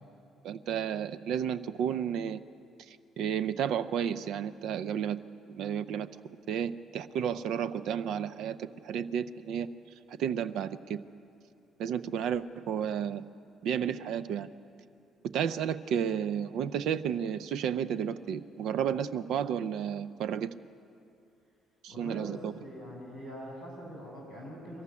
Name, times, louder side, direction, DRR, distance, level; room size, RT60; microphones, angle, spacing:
voice 1, 0.4-2.4 2.9-5.2 5.5-6.1 6.5-9.7 10.1-11.0 11.8-13.2 13.6-14.5 15.3-20.5 21.8-22.5, right 8 dB, 65° right, 13 dB, 0.7 m, -32 dB
voice 2, 21.9-24.8, equal, 85° right, -7 dB, 7.6 m, -43 dB
22.5 x 15.0 x 9.7 m, 2.5 s
hypercardioid pair, 50°, 0 cm